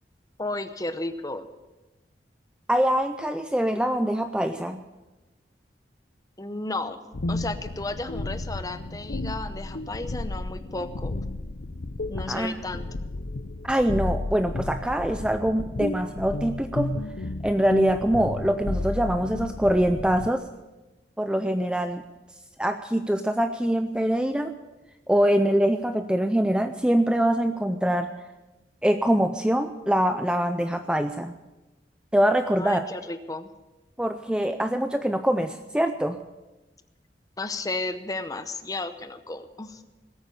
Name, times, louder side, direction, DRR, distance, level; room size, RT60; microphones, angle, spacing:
voice 1, 0.4-1.5 6.4-7.0 7.3-11.2 12.1-13.0 32.5-33.5 37.4-39.8, left 2 dB, 20° left, 10 dB, 0.8 m, -33 dB
voice 2, 2.7-4.8 12.3-12.6 13.6-16.9 17.4-20.4 21.2-22.0 22.6-24.5 25.1-28.1 28.8-31.3 32.1-32.8 34.0-36.2, equal, 5° right, 8 dB, 0.4 m, -24 dB
sound 1, 7.1-20.3, left 2 dB, 70° left, 0.7 m, -33 dB
19.5 x 8.8 x 7.1 m, 1.1 s
head